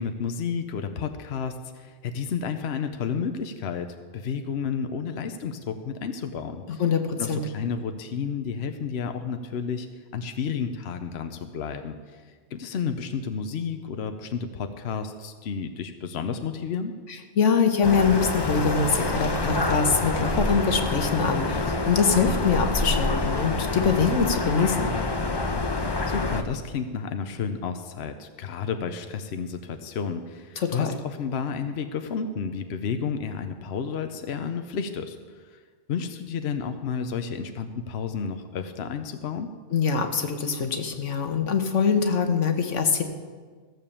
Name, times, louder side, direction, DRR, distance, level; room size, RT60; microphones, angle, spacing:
voice 1, 0.0-3.9 4.1-6.8 7.2-9.9 10.1-12.3 12.5-16.9 26.1-35.6 35.9-39.5, left 6 dB, 65° left, 7 dB, 1.0 m, -31 dB
voice 2, 6.8-7.4 17.4-24.9 30.6-30.9 39.7-43.0, left 5 dB, 85° left, 6 dB, 1.4 m, -23 dB
sound 1, 17.8-26.4, left 2 dB, 25° left, 0.7 m, -27 dB
15.5 x 6.9 x 7.1 m, 1.5 s
omnidirectional pair, 1.2 m